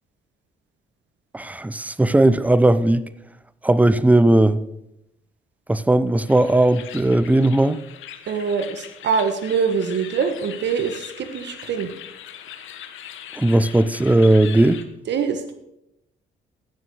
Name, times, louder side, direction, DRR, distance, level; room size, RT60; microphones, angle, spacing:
voice 1, 1.3-3.0 3.6-4.6 5.7-7.8 13.4-14.8, right 1 dB, 5° right, 0.6 m, -17 dB
sound 1, 6.3-14.8, left 10 dB, 80° left, 1.3 m, -40 dB
voice 2, 8.3-11.9 15.1-15.5, right 6 dB, 65° right, 1.3 m, -24 dB
15.5 x 6.9 x 6.3 m
cardioid pair, 90°, 20 cm